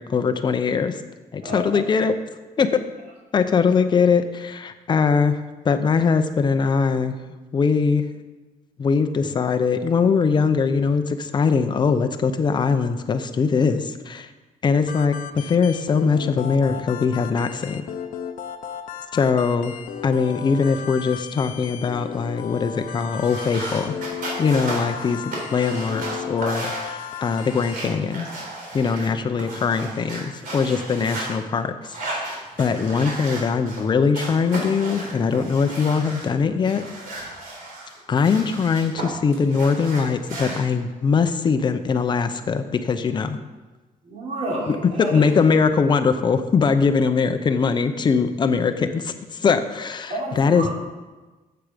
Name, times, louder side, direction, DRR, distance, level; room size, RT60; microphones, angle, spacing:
voice 1, 0.1-1.0 1.3-2.1 2.6-2.8 3.3-7.1 7.5-8.1 8.8-14.3 14.6-17.8 19.1-19.7 20.0-23.9 24.4-28.3 28.7-31.7 32.0-36.9 38.1-43.4 44.7-50.7, left 5 dB, 30° left, 9 dB, 0.7 m, -21 dB
voice 2, 1.4-1.8 44.0-45.3 50.1-50.7, right 1 dB, 50° right, -3 dB, 3.2 m, -29 dB
sound 1, 14.9-27.8, left 8 dB, 65° left, 0.8 m, -35 dB
sound 2, 23.2-31.3 31.8-33.8 34.1-36.3 36.6-39.0 39.3-40.6, right 2 dB, 70° right, 3.8 m, -34 dB
13.0 x 7.9 x 5.1 m, 1.2 s
cardioid pair, 165°, 15 cm